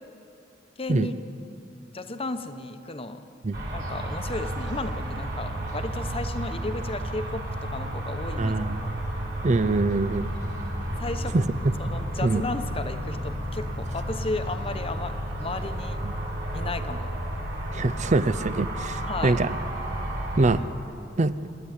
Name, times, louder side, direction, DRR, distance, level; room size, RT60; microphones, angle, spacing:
voice 1, 0.8-1.1 1.9-3.2 3.7-8.6 11.0-11.3 11.8-15.1 15.4-16.0 16.5-17.1 19.0-19.4, left 2 dB, 30° left, 8 dB, 1.0 m, -34 dB
sound 1, 3.5-20.6, right 1 dB, 70° right, 4.7 m, -32 dB
voice 2, 8.4-9.0 9.4-10.3 11.3-11.4 11.8-12.4 16.0-16.1 17.7-19.6 20.4-20.6 21.2-21.3, right 2 dB, 40° right, 14 dB, 0.6 m, -24 dB
27.5 x 10.0 x 9.6 m, 2.7 s
head